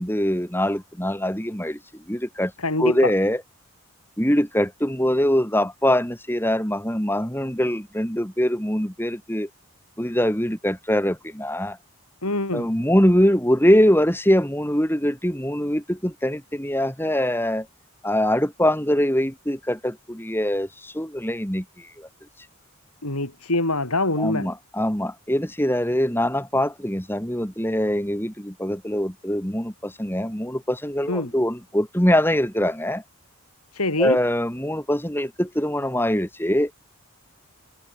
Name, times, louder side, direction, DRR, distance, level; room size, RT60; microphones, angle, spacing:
voice 1, 0.0-2.5 2.8-3.4 4.2-9.5 10.0-11.8 12.5-17.7 18.0-22.1 24.2-33.0 34.0-36.7, equal, 10° left, 4.3 m, -23 dB
voice 2, 2.6-3.1 12.2-12.7 23.0-24.5 31.1-31.3 33.7-34.2, left 2 dB, 85° left, 5.9 m, -24 dB
head